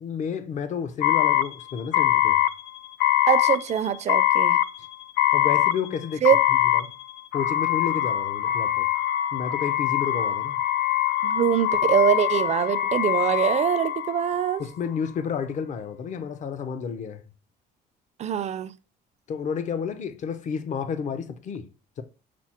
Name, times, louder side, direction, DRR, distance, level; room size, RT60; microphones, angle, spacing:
voice 1, 0.0-2.4 5.3-6.2 6.5-6.9 7.3-8.9 9.3-10.6 14.6-17.2 19.3-21.7 22.0-22.1, left 6 dB, 45° left, 0.6 m, -31 dB
sound 1, 1.0-14.6, left 11 dB, 85° left, 0.4 m, -23 dB
voice 2, 3.3-4.6 6.2-6.4 11.2-14.6 18.2-18.7, right 9 dB, 40° right, 0.4 m, -23 dB
5.9 x 2.0 x 4.3 m
cardioid pair, 110°, 17 cm